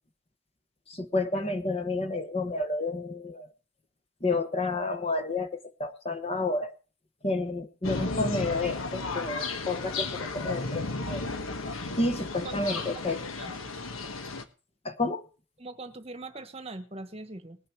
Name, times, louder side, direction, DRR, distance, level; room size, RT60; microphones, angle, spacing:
voice 1, 0.9-3.5 4.2-6.7 7.2-11.2 12.0-13.2 14.8-15.3, left 2 dB, 30° left, 8 dB, 1.0 m, -30 dB
sound 1, 7.8-14.4, left 3 dB, 90° left, 1.3 m, -34 dB
voice 2, 15.6-17.6, right 2 dB, 30° right, 9 dB, 1.2 m, -41 dB
20.0 x 6.7 x 4.4 m, 0.36 s
head